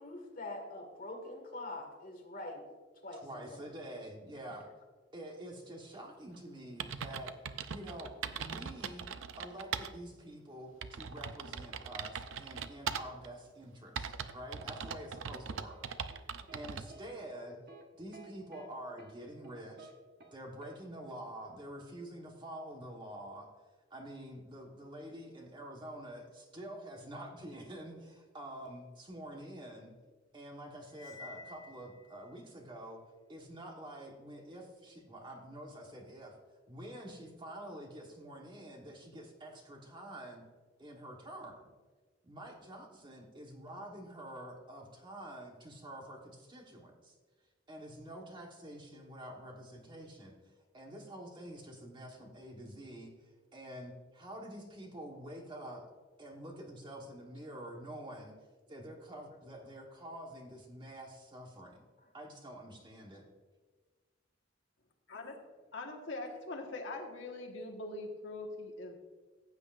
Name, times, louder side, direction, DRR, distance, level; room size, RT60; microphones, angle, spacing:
voice 1, 0.0-2.6 3.0-3.6 4.5-4.6 16.4-16.7, left 2 dB, 50° left, 2 dB, 1.8 m, -44 dB
voice 2, 3.1-4.7 5.1-7.3 7.7-9.1 9.4-15.8 16.5-17.6 18.0-19.9 20.3-23.5 23.9-29.9 30.3-33.0 33.3-36.4 36.7-40.5 40.8-41.7 42.2-47.1 47.7-50.3 50.7-53.1 53.5-55.8 56.2-58.3 58.7-61.8 62.1-63.2, right 1 dB, 25° right, 1 dB, 1.3 m, -47 dB
sound 1, 6.4-6.5 6.8-9.9 10.3-10.4 10.8-13.3 14.0-16.9, right 6 dB, 90° right, 0.5 m, -41 dB
sound 2, 15.1-16.6 16.9-17.1 17.7-17.8 18.1-18.7 19.0-19.1 19.4-19.9 20.2-20.4 20.6-20.8, right 3 dB, 55° right, 1.3 m, -54 dB
Cymbal, 30.9-32.3, left 4 dB, 20° left, 2.4 m, -51 dB
voice 3, 65.7-69.0, left 2 dB, 80° left, 1 dB, 1.5 m, -42 dB
15.5 x 8.1 x 2.5 m, 1.4 s
head